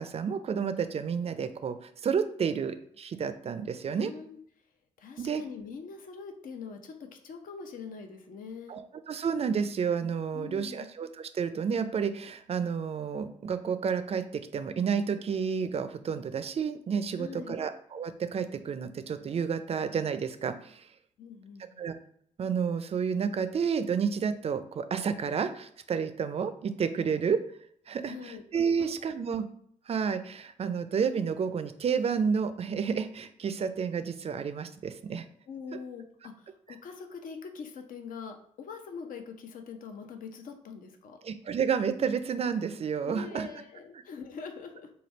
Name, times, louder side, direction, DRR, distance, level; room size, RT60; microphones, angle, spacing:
voice 1, 0.0-4.1 5.2-5.4 8.7-20.9 21.8-21.9 22.4-27.4 27.9-29.5 29.9-35.3 41.2-43.5, right 6 dB, 40° right, 11 dB, 0.4 m, -30 dB
voice 2, 4.0-4.4 5.0-8.8 10.3-10.9 17.1-17.7 21.2-21.9 28.0-28.4 28.8-29.3 35.5-41.2 43.0-44.9, left 5 dB, 60° left, 5 dB, 0.6 m, -43 dB
3.3 x 2.3 x 4.2 m, 0.65 s
hypercardioid pair, 45°, 16 cm